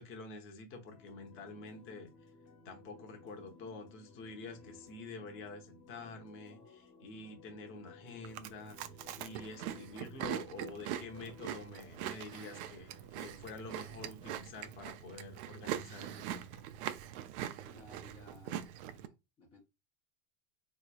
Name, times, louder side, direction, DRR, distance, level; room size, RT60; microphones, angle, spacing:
voice 1, 0.0-2.1 2.6-16.7, left 3 dB, 30° left, 0.9 m, -48 dB
sound 1, 0.9-13.5, left 3 dB, 55° left, 1.3 m, -58 dB
Chewing mastication, 8.2-19.1, right 11 dB, 60° right, 0.5 m, -42 dB
voice 2, 17.6-19.6, left 2 dB, 15° left, 0.5 m, -59 dB
3.9 x 3.1 x 2.2 m
supercardioid pair, 145°, 40 cm